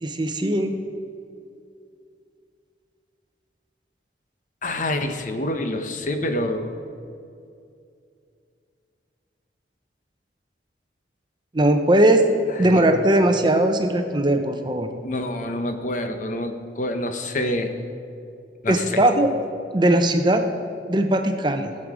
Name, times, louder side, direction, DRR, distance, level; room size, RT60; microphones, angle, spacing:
voice 1, 0.0-0.7 11.5-12.2 12.6-14.9 18.7-19.3 19.7-20.4 20.9-21.7, right 1 dB, 25° right, 6 dB, 0.7 m, -19 dB
voice 2, 4.6-6.8 12.6-12.8 15.0-17.7 18.6-19.0, left 1 dB, 45° left, 6 dB, 0.9 m, -27 dB
17.5 x 7.6 x 4.9 m, 2.5 s
head